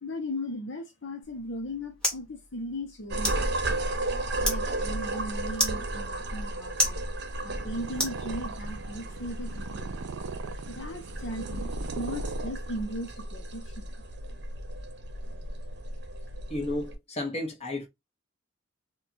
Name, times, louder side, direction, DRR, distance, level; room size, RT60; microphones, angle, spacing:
voice 1, 0.0-3.9 4.4-7.0 7.4-10.0 10.7-11.7 12.0-13.9, left 1 dB, 65° left, 0.7 m, -37 dB
sound 1, 1.2-8.8, left 1 dB, 5° left, 1.2 m, -35 dB
sound 2, 3.1-16.9, right 1 dB, 55° right, 0.8 m, -34 dB
Purr, 7.3-13.0, right 5 dB, 80° right, 0.4 m, -41 dB
voice 2, 16.5-17.9, left 1 dB, 30° left, 1.0 m, -32 dB
4.4 x 2.3 x 2.7 m
head